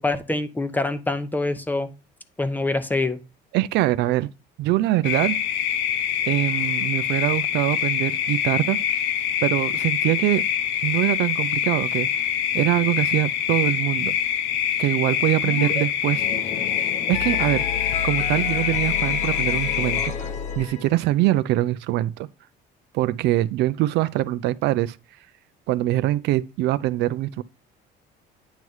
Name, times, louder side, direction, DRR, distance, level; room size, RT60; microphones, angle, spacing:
voice 1, 0.0-1.9 2.4-3.2, left 2 dB, 10° left, 0.6 m, -25 dB
voice 2, 3.5-4.3 4.6-5.4 6.3-8.8 9.4-10.4 10.8-12.3 12.5-14.1 14.8-16.2 17.1-17.7 18.0-20.1 20.6-22.3 22.9-25.0 25.7-27.4, right 15 dB, 70° right, 0.4 m, -23 dB
sound 1, 5.0-20.1, left 9 dB, 90° left, 0.7 m, -25 dB
sound 2, 15.4-15.8 16.1-21.1, left 7 dB, 40° left, 0.8 m, -31 dB
9.1 x 3.2 x 5.4 m
cardioid pair, 135°, 19 cm